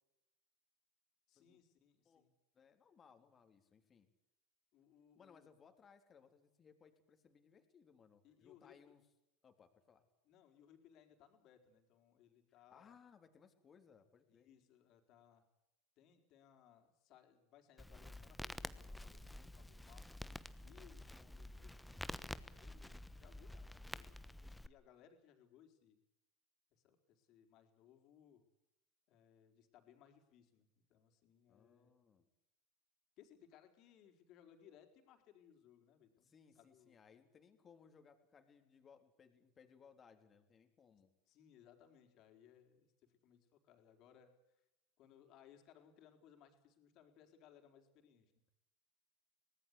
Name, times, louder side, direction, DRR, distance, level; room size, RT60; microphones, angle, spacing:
voice 1, 1.3-2.3 4.7-5.5 8.2-8.9 10.3-13.0 14.3-15.4 16.0-20.0 20.6-26.0 26.7-28.4 29.1-31.9 33.2-37.0 41.3-44.3 45.0-48.3, left 9 dB, 50° left, 4 dB, 4.6 m, -66 dB
voice 2, 2.5-4.1 5.2-9.0 9.4-10.0 12.6-14.5 31.5-32.3 36.2-41.1, left 6 dB, 30° left, 6 dB, 3.5 m, -65 dB
Crackle, 17.8-24.7, left 1 dB, 5° left, 1.1 m, -49 dB
23.5 x 19.0 x 8.4 m, 0.91 s
hypercardioid pair, 85°, 0 cm